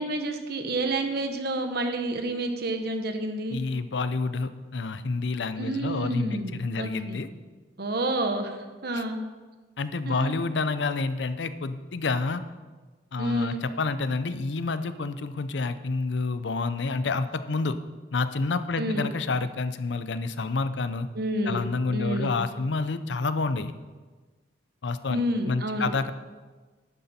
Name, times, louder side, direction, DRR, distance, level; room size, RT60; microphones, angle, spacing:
voice 1, 0.0-3.6 5.6-7.2 7.8-8.6 8.8-9.2 10.0-10.4 13.2-13.6 18.8-19.1 21.1-22.3 25.1-25.9, right 1 dB, 60° right, 6 dB, 1.1 m, -29 dB
voice 2, 3.5-7.3 8.9-9.0 9.8-12.4 13.1-17.8 18.1-21.1 21.4-23.7 24.8-26.1, left 3 dB, 75° left, 12 dB, 0.6 m, -29 dB
11.0 x 9.4 x 4.3 m, 1.3 s
head